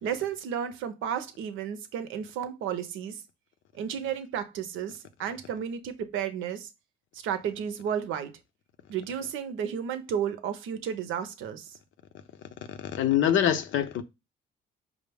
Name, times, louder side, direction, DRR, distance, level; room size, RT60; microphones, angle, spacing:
voice 1, 0.0-3.2 3.7-6.7 7.1-8.3 8.9-11.8, right 8 dB, 85° right, 0.7 m, -33 dB
voice 2, 12.7-14.0, left 10 dB, 80° left, 0.6 m, -25 dB
5.0 x 2.1 x 3.4 m
cardioid pair, 90°, 20 cm